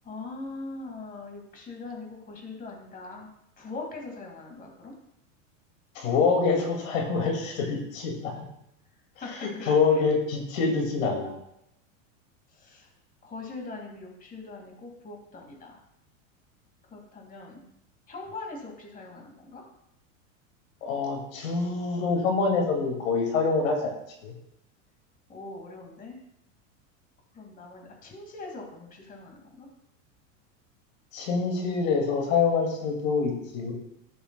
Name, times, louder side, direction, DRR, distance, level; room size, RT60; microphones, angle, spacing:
voice 1, 0.0-3.3 3.6-4.9 9.2-9.8 12.5-12.9 13.2-15.8 16.9-17.7 18.1-19.6 25.3-26.2 27.3-29.7, left 3 dB, 20° left, 1 dB, 2.1 m, -41 dB
voice 2, 6.0-8.4 9.3-11.3 20.8-23.9 24.2-24.3 31.1-33.7, left 4 dB, 85° left, 2 dB, 2.2 m, -26 dB
14.5 x 7.0 x 2.2 m, 0.79 s
supercardioid pair, 130°, 39 cm